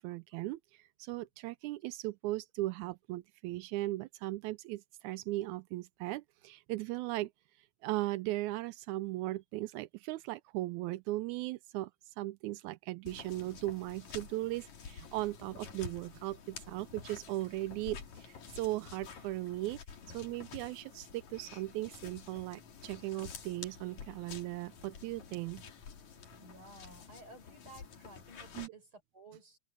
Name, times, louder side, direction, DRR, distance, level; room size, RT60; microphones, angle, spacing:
voice 1, 0.0-19.8 20.1-25.6 28.6-28.7, right 18 dB, 85° right, 2.0 m, -38 dB
sound 1, 13.1-28.7, left 6 dB, 75° left, 3.7 m, -50 dB
voice 2, 26.4-29.6, right 2 dB, 45° right, 7.0 m, -55 dB
omnidirectional pair, 3.3 m